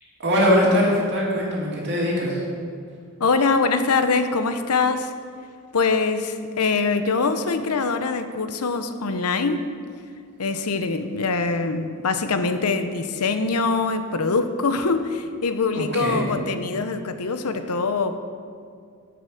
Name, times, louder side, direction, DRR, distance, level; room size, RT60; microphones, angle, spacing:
voice 1, 0.2-2.4 15.7-16.2, equal, 50° right, -5 dB, 2.8 m, -21 dB
voice 2, 3.2-5.1 5.7-9.7 10.4-18.2, left 4 dB, 85° left, 9 dB, 0.8 m, -23 dB
11.0 x 8.0 x 6.4 m, 2.3 s
head